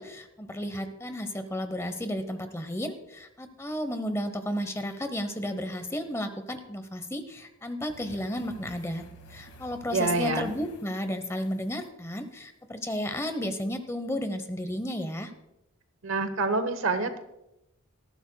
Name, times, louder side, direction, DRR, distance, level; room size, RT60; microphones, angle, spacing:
voice 1, 0.0-15.3, equal, 10° left, 8 dB, 0.9 m, -33 dB
sound 1, 7.9-11.9 13.5-13.7, right 1 dB, 80° left, 1.9 m, -51 dB
voice 2, 9.9-10.5 16.0-17.2, right 3 dB, 60° right, 10 dB, 1.0 m, -27 dB
19.0 x 14.5 x 2.3 m, 0.87 s
head